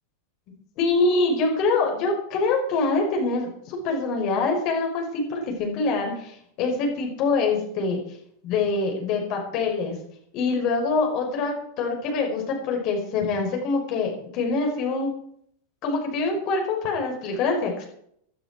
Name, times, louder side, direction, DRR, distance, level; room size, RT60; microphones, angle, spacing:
voice 1, 0.8-8.0 8.4-10.0 10.3-15.1 15.8-17.9, left 3 dB, 40° left, 2 dB, 5.3 m, -25 dB
18.0 x 11.5 x 4.6 m, 0.66 s
figure-of-eight pair, 90°, 0 cm